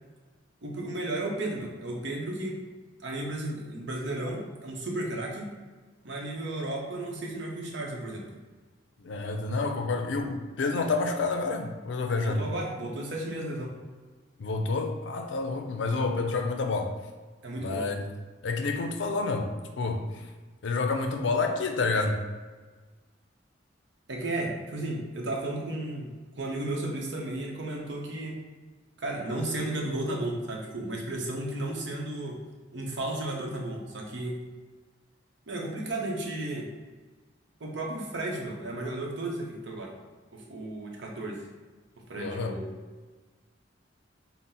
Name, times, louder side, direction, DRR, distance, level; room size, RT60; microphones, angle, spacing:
voice 1, 0.6-2.6 3.0-5.5 6.0-8.3 12.2-13.7 17.4-17.9 24.1-28.4 29.0-32.4 32.7-34.4 35.5-36.7 37.6-39.9 40.3-41.5 42.1-42.7, right 1 dB, 70° right, -1 dB, 0.8 m, -34 dB
voice 2, 9.0-12.4 14.4-16.9 17.6-18.0 18.4-19.5 19.8-20.0 20.6-22.2 42.2-42.6, left 3 dB, 70° left, 5 dB, 0.4 m, -28 dB
3.8 x 2.1 x 4.2 m, 1.4 s
head